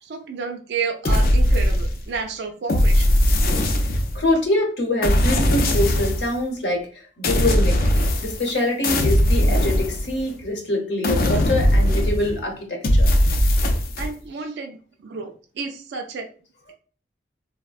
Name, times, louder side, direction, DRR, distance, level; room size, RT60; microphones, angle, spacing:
voice 1, 0.0-3.4 14.0-16.3, right 5 dB, 70° right, 4 dB, 0.3 m, -31 dB
sound 1, 1.0-2.2 2.7-4.3 5.0-6.3 7.2-8.5 8.8-10.4 11.0-12.4 12.8-14.1, left 1 dB, 50° left, 0.4 m, -19 dB
voice 2, 4.1-7.8 8.2-13.1, left 1 dB, 80° left, 2 dB, 0.9 m, -24 dB
3.4 x 2.1 x 2.3 m, 0.41 s
head